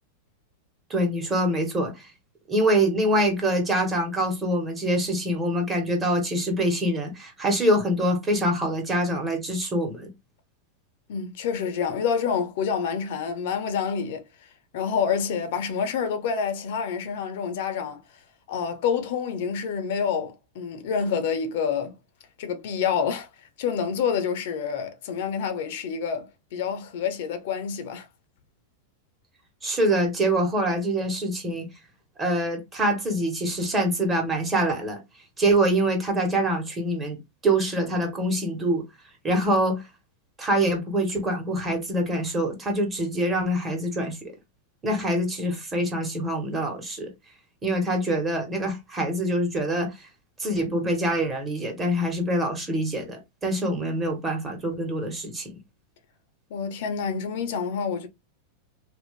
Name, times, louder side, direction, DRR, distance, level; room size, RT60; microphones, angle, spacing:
voice 1, 0.9-2.1 2.5-10.1 29.6-31.7 32.2-35.0 35.4-37.2 37.4-38.8 39.2-39.8 40.4-44.3 44.8-47.1 47.6-49.9 50.4-55.5, right 1 dB, 15° right, 1.3 m, -25 dB
voice 2, 11.1-14.2 14.7-18.0 18.5-21.9 22.4-23.3 23.6-28.1 56.5-58.1, left 6 dB, 65° left, 0.8 m, -27 dB
2.9 x 2.6 x 3.2 m
supercardioid pair, 150°, 0 cm